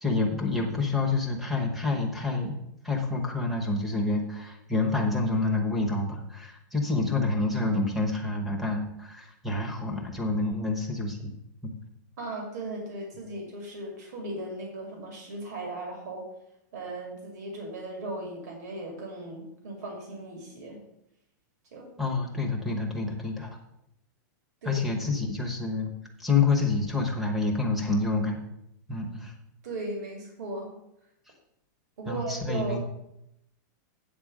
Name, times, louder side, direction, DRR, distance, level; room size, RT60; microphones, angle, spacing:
voice 1, 0.0-2.5 2.8-11.3 11.6-11.7 22.0-23.6 24.6-25.9 26.2-28.4 28.9-29.3 32.1-32.8, left 3 dB, ahead, 2 dB, 1.0 m, -28 dB
voice 2, 12.2-16.3 16.7-20.8 21.7-21.9 24.6-24.8 29.6-30.7 32.0-32.8, right 2 dB, 60° right, 0 dB, 2.4 m, -37 dB
8.7 x 4.3 x 7.4 m, 0.81 s
supercardioid pair, 175°, 10 cm